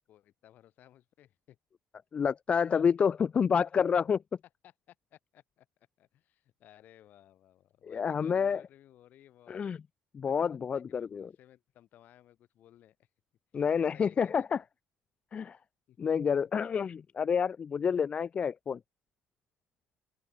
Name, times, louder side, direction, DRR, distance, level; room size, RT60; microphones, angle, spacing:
voice 1, 0.0-1.6 4.6-9.7 10.2-13.1 13.8-14.6 15.9-16.3, left 12 dB, 65° left, 3.2 m, -59 dB
voice 2, 2.1-4.2 7.9-8.6 9.5-9.8 10.1-11.3 13.5-14.6 15.3-15.6 16.0-18.8, left 6 dB, 40° left, 0.3 m, -28 dB
open air
supercardioid pair, 80°, 3 cm